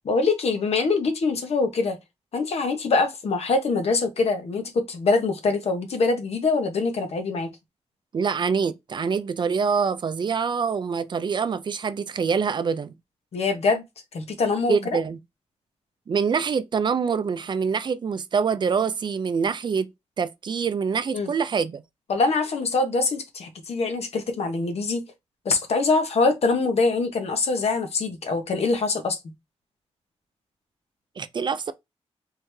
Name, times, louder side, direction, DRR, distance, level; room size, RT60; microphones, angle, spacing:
voice 1, 0.0-2.0 2.3-7.5 13.3-13.8 14.1-15.0 21.1-21.3 22.1-25.0 25.4-29.2, left 3 dB, 70° left, 0.9 m, -24 dB
voice 2, 8.1-12.9 14.7-15.2 16.1-19.9 20.2-21.8 31.2-31.7, right 6 dB, 45° right, 0.4 m, -25 dB
3.6 x 3.3 x 3.1 m
wide cardioid pair, 170°, 11 cm